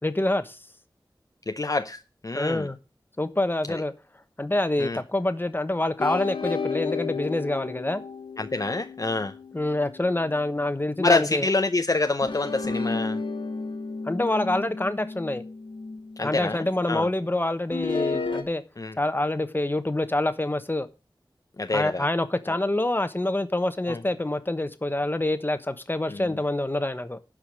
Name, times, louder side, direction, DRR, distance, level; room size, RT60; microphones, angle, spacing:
voice 1, 0.0-0.6 2.3-2.8 3.2-3.9 4.4-8.0 9.5-11.5 14.0-15.4 16.2-18.6 19.0-20.9 21.7-27.2, left 1 dB, 25° left, 1.2 m, -26 dB
voice 2, 1.5-2.7 3.7-3.8 4.8-5.0 8.4-9.3 11.0-13.2 16.2-17.1 18.8-18.9 21.6-22.0 23.9-24.0 26.1-26.2, left 3 dB, 45° left, 0.7 m, -26 dB
sound 1, 6.0-10.6 12.2-16.4 17.7-18.4, left 4 dB, 90° left, 1.5 m, -32 dB
11.5 x 5.1 x 7.5 m
wide cardioid pair, 70°, 8 cm